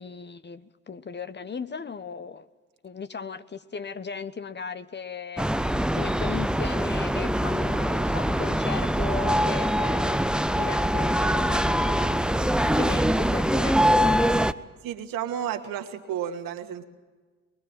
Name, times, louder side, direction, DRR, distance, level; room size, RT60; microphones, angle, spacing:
voice 1, 0.0-2.5 2.8-5.5 5.9-10.2 10.6-14.3, left 5 dB, 25° left, 12 dB, 1.2 m, -37 dB
sound 1, 5.4-14.5, equal, ahead, 0.8 m, -23 dB
voice 2, 14.8-16.8, right 9 dB, 60° right, 6 dB, 2.3 m, -32 dB
24.0 x 22.5 x 9.2 m, 1.4 s
figure-of-eight pair, 50°, 38 cm